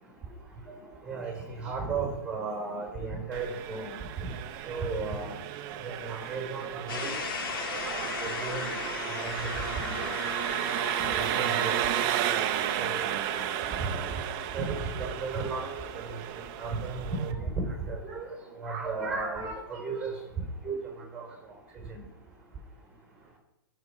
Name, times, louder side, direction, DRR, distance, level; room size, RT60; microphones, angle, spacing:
voice 1, 1.1-4.0 4.7-5.4 5.8-7.2 8.2-8.7 9.2-10.1 10.9-11.7 12.8-13.0 13.7-14.0 14.5-15.7 16.1-16.2 16.6-18.3 18.6-20.1 20.6-20.8 21.1-21.3 21.9-22.0, right 4 dB, 5° right, 0 dB, 3.7 m, -34 dB
Engine, 3.3-17.3, right 11 dB, 30° right, 0.6 m, -33 dB
sound 1, 6.9-16.7, left 4 dB, 75° left, 2.3 m, -38 dB
16.5 x 5.8 x 4.9 m, 0.89 s
hypercardioid pair, 155°, 12 cm